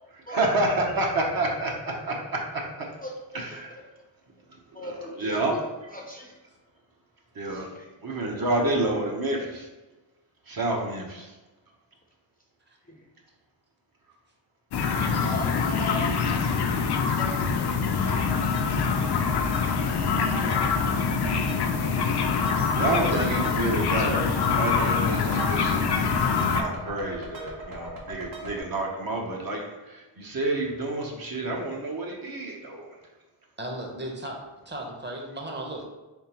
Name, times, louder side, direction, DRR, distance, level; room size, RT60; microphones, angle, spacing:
voice 1, 0.3-2.9 3.3-3.8 4.8-5.5 7.3-7.7 8.0-9.7 10.5-11.3 22.7-32.9, right 2 dB, 50° right, -1 dB, 0.9 m, -29 dB
voice 2, 3.0-3.5 3.8-3.9 4.7-5.6 5.9-6.3 7.5-7.9 12.9-13.0 15.2-16.2 16.7-17.4, left 1 dB, 20° left, -1 dB, 0.6 m, -38 dB
sound 1, 14.7-26.6, left 5 dB, 55° left, 0.6 m, -25 dB
sound 2, 17.9-28.6, equal, 80° right, 1.0 m, -40 dB
voice 3, 23.0-23.5 25.0-25.4 33.6-35.9, right 1 dB, 20° right, 1 dB, 0.9 m, -35 dB
3.6 x 3.3 x 3.0 m, 1.1 s
cardioid pair, 55°, 47 cm